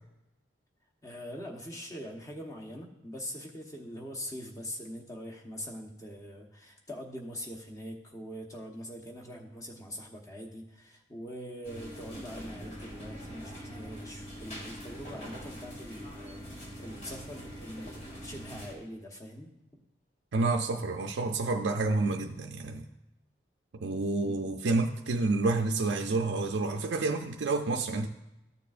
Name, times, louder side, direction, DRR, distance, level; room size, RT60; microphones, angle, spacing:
voice 1, 1.0-19.8 24.2-24.3, equal, 20° left, 0 dB, 1.0 m, -43 dB
sound 1, 11.6-18.7, equal, 35° left, 1.8 m, -43 dB
voice 2, 20.3-22.9 23.7-28.1, right 3 dB, 75° right, 2 dB, 0.5 m, -29 dB
13.5 x 6.8 x 2.5 m, 0.90 s
head